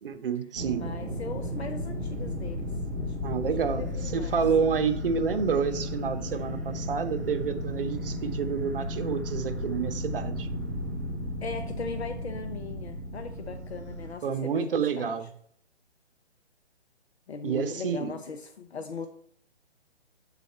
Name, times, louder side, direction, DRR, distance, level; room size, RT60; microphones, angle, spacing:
voice 1, 0.0-0.9 3.2-10.5 14.2-15.3 17.4-18.1, right 6 dB, 55° right, 10 dB, 0.8 m, -29 dB
sound 1, 0.5-14.1, left 1 dB, 15° right, 0.3 m, -34 dB
voice 2, 0.7-2.7 3.0-3.2 3.4-4.4 11.4-15.2 17.3-19.1, left 4 dB, 70° left, 6 dB, 0.8 m, -39 dB
6.9 x 4.1 x 4.2 m, 0.67 s
figure-of-eight pair, 135°, 33 cm